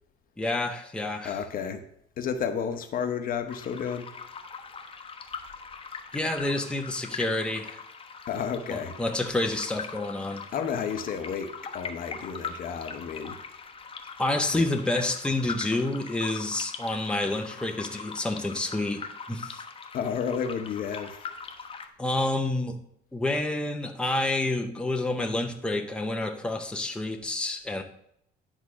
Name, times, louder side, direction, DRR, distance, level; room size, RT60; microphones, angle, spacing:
voice 1, 0.4-1.4 6.1-7.8 8.7-10.4 14.2-19.6 22.0-22.8 23.1-27.8, left 2 dB, 5° left, 4 dB, 0.9 m, -29 dB
voice 2, 1.2-1.8 2.2-4.1 8.3-9.0 10.5-13.4 14.5-14.6 19.9-21.3, left 7 dB, 55° left, 7 dB, 1.0 m, -31 dB
sound 1, 3.5-21.9, left 5 dB, 35° left, 1.1 m, -41 dB
10.5 x 3.7 x 6.3 m, 0.72 s
cardioid pair, 110°, 17 cm